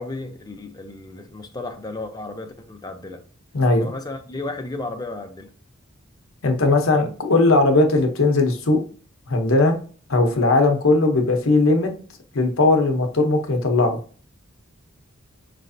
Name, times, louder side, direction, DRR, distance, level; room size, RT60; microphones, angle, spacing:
voice 1, 0.0-3.2 3.8-5.5, left 2 dB, 20° left, 0.6 m, -33 dB
voice 2, 3.5-3.8 6.4-8.8 9.3-9.7 10.1-11.9 12.3-14.0, left 2 dB, 70° left, 0.9 m, -18 dB
4.9 x 3.2 x 2.7 m
head